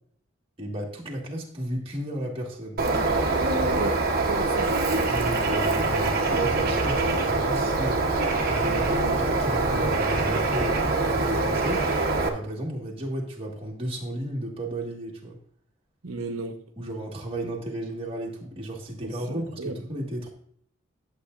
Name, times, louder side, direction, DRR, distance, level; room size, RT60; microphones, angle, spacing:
voice 1, 0.6-2.8 5.1-8.1 8.5-11.9 12.2-15.4 16.8-20.3, right 1 dB, 25° right, -2 dB, 1.7 m, -33 dB
Bird, 2.8-12.3, right 3 dB, 45° right, 1.1 m, -24 dB
voice 2, 3.6-4.0 4.3-4.7 16.0-16.6 19.0-19.8, right 2 dB, 80° right, 5 dB, 1.0 m, -33 dB
11.5 x 7.5 x 2.6 m, 0.63 s
head